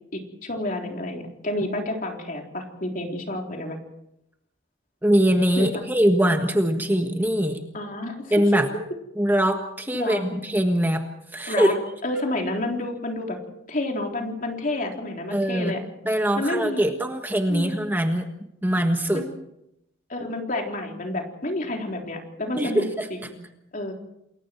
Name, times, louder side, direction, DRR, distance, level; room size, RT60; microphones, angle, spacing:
voice 1, 0.1-3.8 5.6-5.7 7.7-8.6 9.9-10.4 11.5-11.7 12.0-13.4 13.7-15.8 16.4-16.8 17.5-17.8 19.1-19.3 20.1-22.9 23.1-23.3 23.7-23.9, left 1 dB, 45° left, 2 dB, 3.7 m, -29 dB
voice 2, 5.0-7.6 8.3-8.7 9.2-11.0 11.3-11.8 15.3-15.7 16.0-18.3 18.6-19.3 22.6-23.1, equal, 10° right, 4 dB, 1.5 m, -22 dB
28.5 x 21.5 x 4.6 m, 0.82 s
head